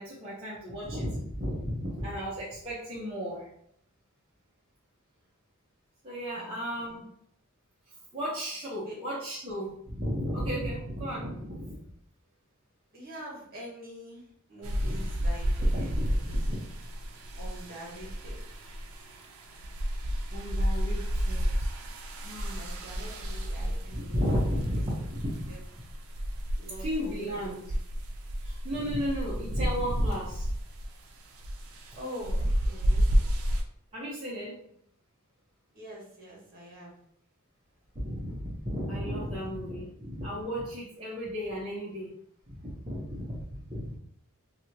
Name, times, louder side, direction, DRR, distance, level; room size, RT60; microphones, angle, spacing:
voice 1, 0.0-3.5 6.0-7.0 8.1-11.8 14.8-15.1 15.6-16.1 16.5-16.6 20.3-21.7 22.2-22.6 23.9-25.5 26.8-27.6 28.4-30.5 33.9-34.6 37.9-42.1 42.5-44.0, equal, 25° right, -9 dB, 0.9 m, -34 dB
voice 2, 12.9-15.9 16.3-16.4 17.3-18.4 22.5-24.2 24.5-24.8 25.5-25.6 26.6-27.7 32.0-33.2 35.7-37.0 39.2-39.9, equal, 45° right, -5 dB, 1.4 m, -45 dB
sound 1, 14.6-33.6, equal, 80° right, 0.5 m, -31 dB
3.0 x 2.9 x 2.8 m, 0.67 s
head